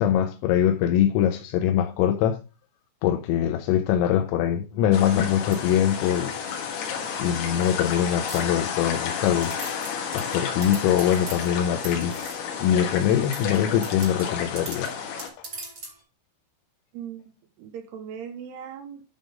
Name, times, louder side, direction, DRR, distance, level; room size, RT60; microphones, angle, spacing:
voice 1, 0.0-2.4 3.0-6.3 7.2-9.6 10.1-12.2 12.6-14.9 15.4-15.5, left 10 dB, 85° left, 3.4 m, -23 dB
sound 1, 4.9-15.3, left 7 dB, 70° left, 3.8 m, -31 dB
sound 2, 5.5-7.0 7.5-7.9 8.3-9.0 9.4-12.7 13.2-16.0, right 2 dB, 55° right, 1.0 m, -42 dB
voice 2, 16.9-19.0, right 8 dB, 75° right, 2.5 m, -39 dB
11.0 x 3.8 x 5.0 m
omnidirectional pair, 5.8 m